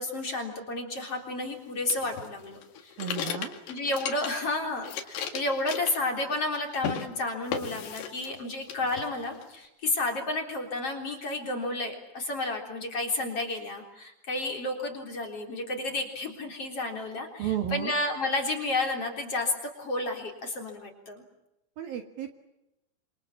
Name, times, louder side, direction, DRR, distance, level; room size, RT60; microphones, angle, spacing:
voice 1, 0.0-3.0 3.7-21.2, left 2 dB, 35° left, 3 dB, 4.2 m, -31 dB
sound 1, 1.9-4.5 4.8-6.5 6.7-7.1 7.5-8.4 8.7-9.5, left 8 dB, 65° left, 4.1 m, -35 dB
voice 2, 3.0-3.6 17.4-17.9 21.8-22.3, right 10 dB, 60° right, 7 dB, 3.1 m, -32 dB
27.5 x 27.0 x 7.3 m, 0.90 s
omnidirectional pair, 5.4 m